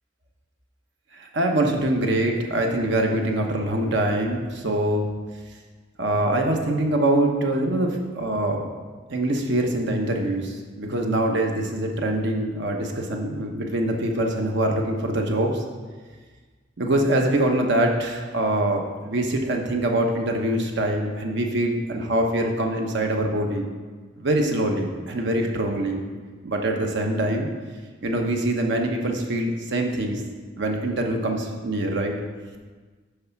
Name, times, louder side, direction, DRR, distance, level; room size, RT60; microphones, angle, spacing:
voice 1, 1.2-5.1 6.0-8.7 9.1-15.6 16.8-23.7 24.2-26.0 26.4-27.5 28.0-30.2 30.6-32.1, right 1 dB, 65° right, 2 dB, 1.0 m, -24 dB
9.6 x 3.4 x 5.8 m, 1.4 s
head